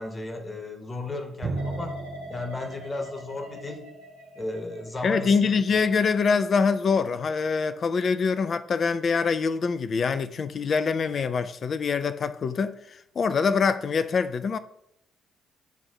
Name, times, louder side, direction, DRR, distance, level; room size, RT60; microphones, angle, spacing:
voice 1, 0.0-2.0 2.3-3.9 4.3-5.6, left 2 dB, 25° left, 1.2 m, -34 dB
Drum, 1.4-4.9, right 3 dB, 35° right, 0.9 m, -37 dB
sound 1, 1.6-8.5 8.9-9.3, equal, 85° right, 1.4 m, -46 dB
voice 2, 5.0-14.6, left 5 dB, 45° left, 0.3 m, -24 dB
7.1 x 2.6 x 5.5 m
figure-of-eight pair, 45°, 0 cm